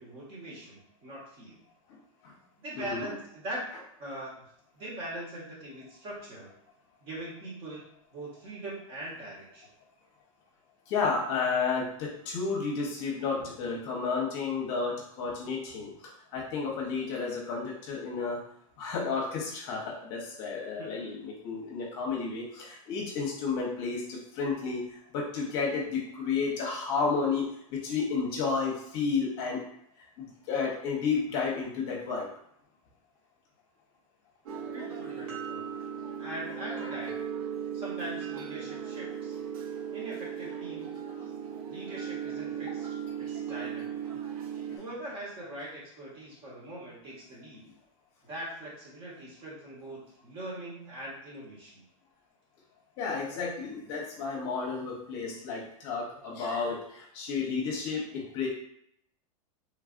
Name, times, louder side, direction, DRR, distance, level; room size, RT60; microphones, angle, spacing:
voice 1, 0.0-1.6 2.6-3.6 4.0-4.3 4.7-6.5 7.0-7.8 8.1-9.7 20.8-20.9 34.7-35.7 36.2-37.2 37.7-39.4 39.9-41.1 41.7-42.9 43.2-44.0 44.8-47.6 48.2-51.8, right 1 dB, 30° right, -5 dB, 1.1 m, -41 dB
voice 2, 2.8-3.1 10.9-15.9 16.3-18.4 18.8-24.8 25.1-29.6 30.2-32.3 36.7-36.9 44.7-44.8 53.0-58.5, left 5 dB, 45° left, -2 dB, 0.8 m, -32 dB
sound 1, 34.5-44.8, right 8 dB, 85° right, 0.6 m, -37 dB
3.2 x 2.3 x 2.4 m, 0.70 s
supercardioid pair, 155°, 18 cm